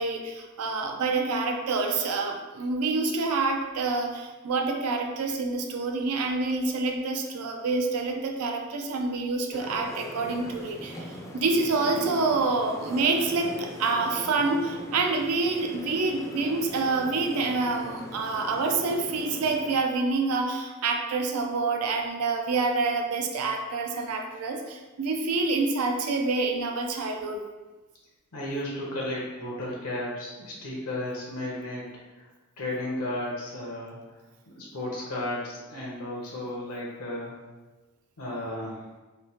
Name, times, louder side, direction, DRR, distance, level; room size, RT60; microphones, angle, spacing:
voice 1, 0.0-11.1 11.3-27.4, right 3 dB, 90° right, 3 dB, 0.4 m, -27 dB
sound 1, 9.5-19.8, equal, 15° left, 0.3 m, -40 dB
voice 2, 28.3-31.8 32.1-32.3 32.6-34.0 34.6-37.3 38.2-38.8, left 1 dB, 80° left, -4 dB, 0.6 m, -33 dB
3.1 x 2.0 x 2.7 m, 1.2 s
head